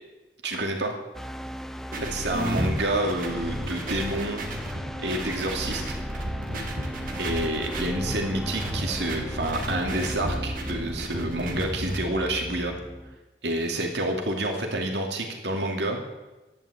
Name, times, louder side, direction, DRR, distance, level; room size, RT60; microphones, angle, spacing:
voice 1, 0.4-1.0 2.1-6.0 7.2-12.7 13.4-16.0, right 1 dB, 80° right, 2 dB, 2.5 m, -28 dB
sound 1, 1.1-13.2, equal, ahead, 0.4 m, -38 dB
sound 2, 1.9-12.0, equal, 50° right, 2.5 m, -33 dB
13.0 x 11.0 x 8.1 m, 1.1 s
head